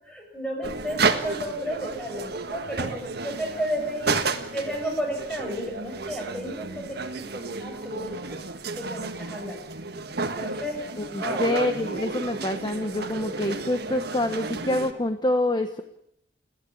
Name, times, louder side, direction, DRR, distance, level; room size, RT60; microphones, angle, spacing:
voice 1, 0.0-4.2 4.5-8.4 8.7-9.6 10.3-10.8 11.2-11.4, equal, 5° left, 1 dB, 6.8 m, -33 dB
sound 1, 0.6-14.9, right 4 dB, 60° right, 1.6 m, -32 dB
voice 2, 11.0-15.8, left 1 dB, 25° left, 8 dB, 1.0 m, -26 dB
29.5 x 11.5 x 8.5 m, 0.77 s
head